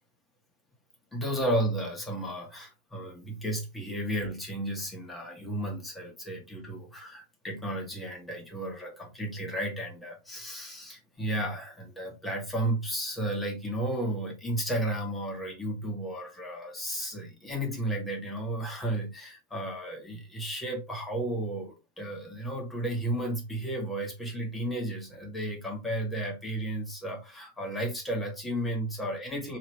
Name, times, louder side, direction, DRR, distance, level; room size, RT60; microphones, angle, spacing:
voice 1, 1.1-29.6, right 1 dB, 10° left, 1.3 m, -33 dB
3.1 x 2.9 x 3.0 m
figure-of-eight pair, 90°, 0 cm